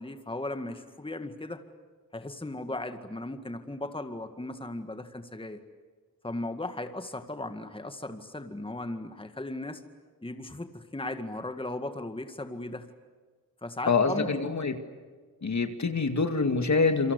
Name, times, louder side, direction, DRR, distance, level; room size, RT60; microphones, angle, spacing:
voice 1, 0.0-1.6 2.1-5.6 6.2-9.8 10.2-12.9 13.6-14.5, left 2 dB, 15° left, 7 dB, 2.0 m, -37 dB
voice 2, 13.9-14.7 15.4-17.1, left 4 dB, 50° left, 7 dB, 2.4 m, -25 dB
28.0 x 23.0 x 8.3 m, 1.5 s
cardioid pair, 65°, 35 cm